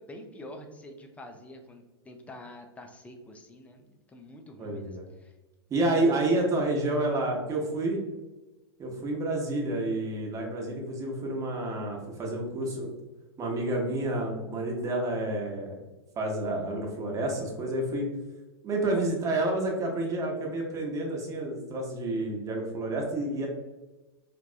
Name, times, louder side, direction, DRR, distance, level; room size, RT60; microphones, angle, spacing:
voice 1, 0.0-5.3 18.8-19.0, left 1 dB, 10° left, 3 dB, 0.4 m, -46 dB
voice 2, 4.6-5.1 5.7-8.0 8.8-12.9 13.4-15.7 16.2-18.1 18.6-23.5, right 2 dB, 25° right, 0 dB, 0.8 m, -29 dB
3.3 x 2.1 x 2.4 m, 1.1 s
hypercardioid pair, 95°, 14 cm